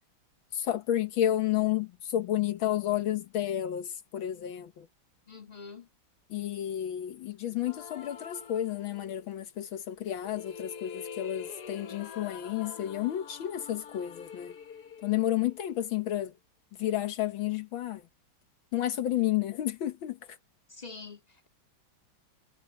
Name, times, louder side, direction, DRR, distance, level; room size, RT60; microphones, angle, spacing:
voice 1, 0.5-4.9 6.3-14.6 15.0-16.3 16.8-18.0 18.7-20.4, left 12 dB, 80° left, 1.9 m, -31 dB
voice 2, 5.3-5.9 20.7-21.5, left 4 dB, 20° left, 2.9 m, -45 dB
sound 1, 7.6-9.3 10.0-16.1, left 7 dB, 60° left, 1.5 m, -46 dB
omnidirectional pair, 2.1 m